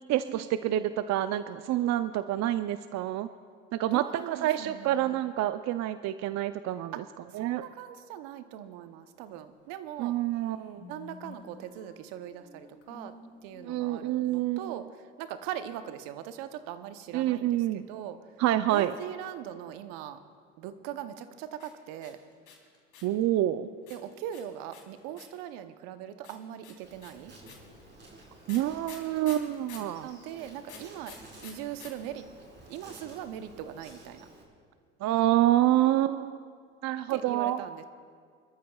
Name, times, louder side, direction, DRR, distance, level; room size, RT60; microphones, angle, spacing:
voice 1, 0.1-3.3 3.7-7.0 7.3-7.6 10.0-10.9 13.6-14.7 17.1-17.9 18.4-18.9 23.0-23.7 28.5-30.1 35.0-36.4 36.8-37.6, right 13 dB, 50° right, 12 dB, 0.6 m, -27 dB
voice 2, 3.9-5.2 6.9-7.0 7.3-10.2 10.9-13.1 13.4-18.2 18.7-20.2 20.6-22.2 23.9-27.3 30.0-32.2 32.7-34.3 37.1-37.8, right 11 dB, 70° right, 10 dB, 0.9 m, -41 dB
sound 1, 10.0-10.1 10.4-14.4, left 3 dB, 40° left, 1.9 m, -51 dB
sound 2, 21.5-23.2 23.9-25.5 26.2-29.9 30.6-31.9 32.2-32.3 32.4-32.9, left 7 dB, 55° left, 3.6 m, -49 dB
Insect, 26.8-34.4, right 2 dB, 30° right, 4.2 m, -52 dB
26.5 x 13.5 x 2.3 m, 2.1 s
hypercardioid pair, 70°, 36 cm